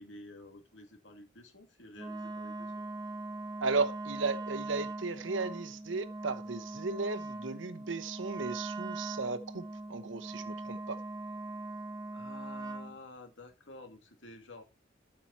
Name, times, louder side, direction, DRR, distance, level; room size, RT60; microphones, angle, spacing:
voice 1, 0.0-2.8 12.1-14.6, left 2 dB, 70° left, 2.5 m, -51 dB
Wind instrument woodwind instrument, 1.9-13.0, right 2 dB, 20° right, 0.8 m, -41 dB
voice 2, 3.6-11.0, right 4 dB, 75° right, 0.9 m, -35 dB
13.0 x 5.8 x 4.2 m
head